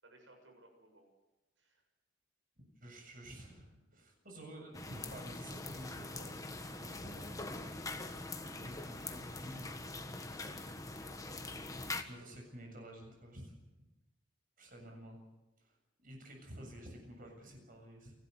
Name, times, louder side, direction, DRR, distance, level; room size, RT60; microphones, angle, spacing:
voice 1, 0.0-1.1 1.6-1.8 3.8-4.0 7.1-7.3 8.7-8.9 10.9-11.4 12.1-12.4 14.9-15.0, right 2 dB, 75° right, 3 dB, 7.4 m, -63 dB
voice 2, 2.8-7.2 8.5-9.7 11.7-13.5 14.6-15.2 16.0-18.1, right 1 dB, 45° right, 2 dB, 7.4 m, -51 dB
sound 1, 4.7-12.0, left 2 dB, 20° left, 1.5 m, -43 dB
29.5 x 12.5 x 8.0 m, 1.0 s
head